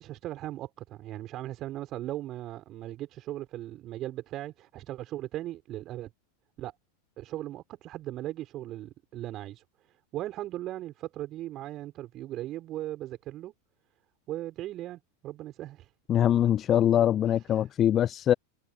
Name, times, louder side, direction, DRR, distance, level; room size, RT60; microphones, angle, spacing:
voice 1, 0.0-6.1 6.6-6.7 7.2-9.6 10.1-13.5 14.3-15.9 17.3-17.7, right 14 dB, 35° right, 5.5 m, -38 dB
voice 2, 16.1-18.3, left 10 dB, 30° left, 0.3 m, -23 dB
open air
figure-of-eight pair, 90°, 0 cm